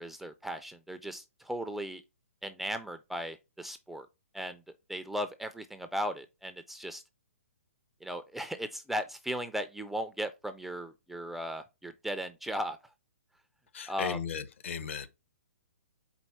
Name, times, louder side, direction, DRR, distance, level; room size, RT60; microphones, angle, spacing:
voice 1, 0.0-2.0 2.4-4.1 4.3-4.6 4.9-7.0 8.0-12.8 13.9-14.2, equal, ahead, 0.4 m, -37 dB
voice 2, 13.7-15.1, left 7 dB, 60° left, 0.8 m, -36 dB
4.5 x 3.9 x 5.5 m
figure-of-eight pair, 125°, 8 cm